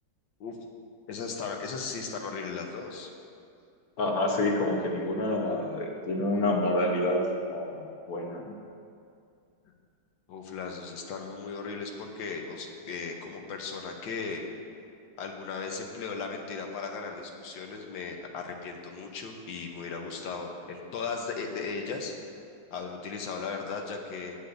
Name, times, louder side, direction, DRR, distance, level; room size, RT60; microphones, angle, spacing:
voice 1, 1.1-3.1 4.8-5.2 10.3-14.4 15.2-22.1 22.7-24.4, left 5 dB, 90° left, 2 dB, 1.7 m, -37 dB
voice 2, 4.0-7.2 7.5-8.5, left 1 dB, 55° left, 1 dB, 1.4 m, -28 dB
15.0 x 9.7 x 2.6 m, 2.4 s
omnidirectional pair, 2.0 m